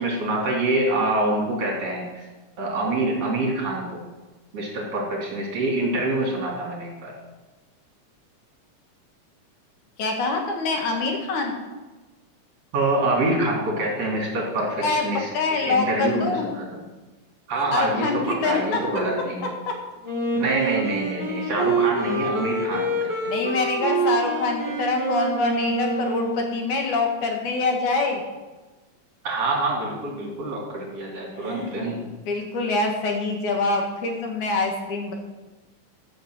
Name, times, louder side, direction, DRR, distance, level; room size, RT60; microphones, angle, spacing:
voice 1, 0.0-2.2 2.6-4.0 4.5-7.1 12.7-16.7 17.5-19.5 20.4-23.1 29.2-32.0, right 2 dB, 55° right, -2 dB, 4.0 m, -26 dB
voice 2, 10.0-11.5 14.8-15.1 15.3-16.5 17.7-18.8 19.7-19.8 23.3-28.2 31.4-31.8 32.1-35.1, left 3 dB, 75° left, 2 dB, 3.2 m, -25 dB
Wind instrument woodwind instrument, 20.0-26.7, right 2 dB, 10° right, 1.3 m, -26 dB
13.0 x 6.5 x 7.7 m, 1.2 s
omnidirectional pair, 3.5 m